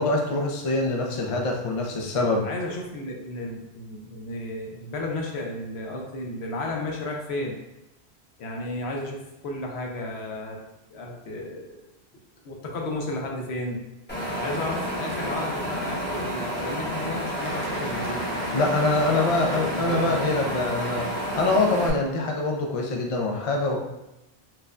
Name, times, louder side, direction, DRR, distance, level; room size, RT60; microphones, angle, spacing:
voice 1, 0.0-2.4 18.5-23.8, left 2 dB, 45° left, 0 dB, 0.5 m, -24 dB
voice 2, 2.4-7.6 8.4-10.6 10.9-11.9 12.4-13.8 14.3-18.2 19.0-20.2, left 2 dB, 75° left, 0 dB, 0.9 m, -33 dB
Wind, 14.1-21.9, equal, 10° left, 0.8 m, -30 dB
Cheering / Applause, 17.4-22.3, right 1 dB, 20° right, 0.3 m, -41 dB
4.5 x 2.2 x 2.5 m, 0.93 s
omnidirectional pair, 1.1 m